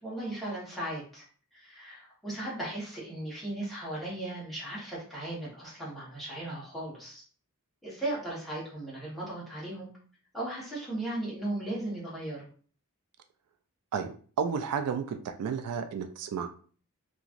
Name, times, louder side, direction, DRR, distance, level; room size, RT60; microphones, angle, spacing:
voice 1, 0.0-1.2 1.5-7.2 7.8-9.9 10.3-12.5, right 1 dB, ahead, -7 dB, 1.2 m, -37 dB
voice 2, 13.9-16.5, right 6 dB, 85° right, 9 dB, 0.3 m, -32 dB
2.9 x 2.4 x 2.5 m, 0.43 s
head